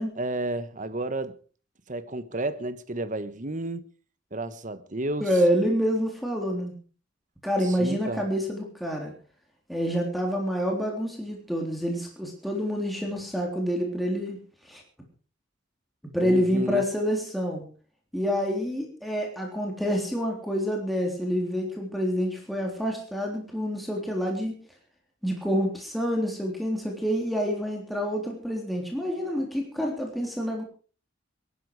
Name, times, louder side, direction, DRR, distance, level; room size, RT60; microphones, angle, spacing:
voice 1, 0.2-1.4 1.9-3.9 4.3-5.3 7.6-8.2 16.2-16.8, right 2 dB, 40° right, 1.3 m, -32 dB
voice 2, 5.2-6.7 7.4-9.1 9.7-14.4 14.6-14.8 16.1-17.7 18.1-24.5 25.2-30.6, equal, ahead, 3.6 m, -27 dB
22.0 x 12.5 x 4.9 m
head